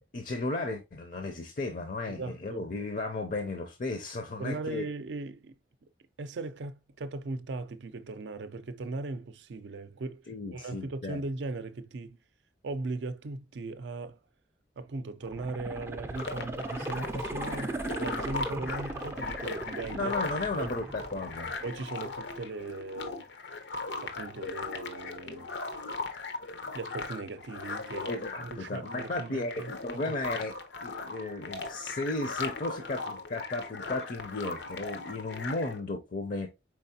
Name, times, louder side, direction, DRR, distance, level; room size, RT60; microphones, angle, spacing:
voice 1, 0.1-4.8 10.3-11.2 19.9-21.5 28.1-30.5 30.8-36.5, left 2 dB, 45° left, 0.5 m, -34 dB
voice 2, 2.1-2.6 4.4-5.5 6.2-10.2 10.5-12.2 12.6-14.2 14.8-20.1 20.6-20.8 21.6-23.3 24.0-25.5 26.7-28.1 28.4-30.4, right 3 dB, 80° right, 0.4 m, -38 dB
sound 1, 15.2-22.2 22.6-22.7, right 2 dB, 15° right, 0.3 m, -38 dB
sound 2, 16.2-35.8, left 3 dB, 85° left, 0.8 m, -38 dB
4.7 x 3.9 x 2.7 m
head